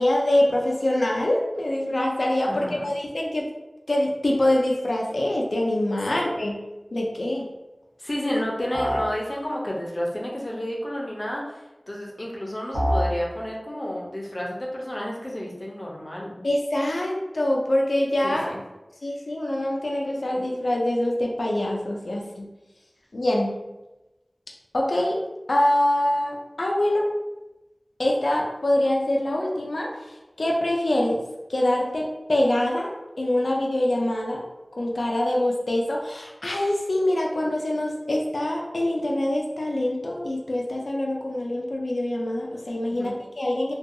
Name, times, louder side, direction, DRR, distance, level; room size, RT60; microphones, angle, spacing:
voice 1, 0.0-3.5 3.9-6.6 6.9-7.5 16.4-18.5 19.0-22.5 23.1-23.6 24.7-25.2 25.5-27.1 28.0-31.2 31.5-34.4 34.8-43.7, left 1 dB, 85° left, -1 dB, 0.3 m, -24 dB
voice 2, 2.5-2.8 8.0-11.4 11.9-16.5 18.2-18.6 42.9-43.1, left 1 dB, 45° left, -3 dB, 0.6 m, -31 dB
sound 1, 8.7-9.2 12.7-13.2, equal, 85° right, 0.8 m, -24 dB
2.6 x 2.3 x 2.5 m, 1.0 s
wide cardioid pair, 50°, 0 cm